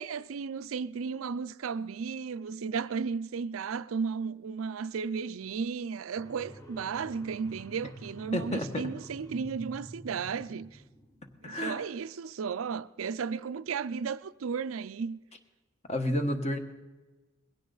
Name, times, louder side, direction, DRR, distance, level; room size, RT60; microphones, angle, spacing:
voice 1, 0.0-10.7 11.4-15.2, right 5 dB, 90° right, 0.5 m, -34 dB
sound 1, 6.2-11.4, right 1 dB, 15° left, 1.2 m, -48 dB
voice 2, 8.3-8.9 11.4-11.8 15.9-16.6, left 1 dB, 35° left, 1.3 m, -30 dB
20.5 x 16.5 x 4.0 m
head